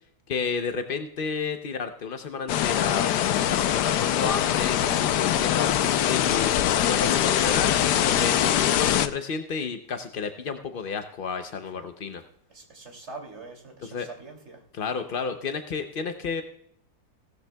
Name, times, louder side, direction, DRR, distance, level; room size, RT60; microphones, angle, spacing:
voice 1, 0.3-6.5 6.8-7.7 8.0-12.2 13.8-14.1 14.7-16.4, left 5 dB, 60° left, 7 dB, 0.5 m, -31 dB
sound 1, 2.5-9.1, left 11 dB, 75° left, 1.2 m, -23 dB
voice 2, 12.5-14.6, right 3 dB, 40° right, 2 dB, 3.0 m, -43 dB
17.0 x 13.5 x 2.3 m, 0.67 s
omnidirectional pair, 1.8 m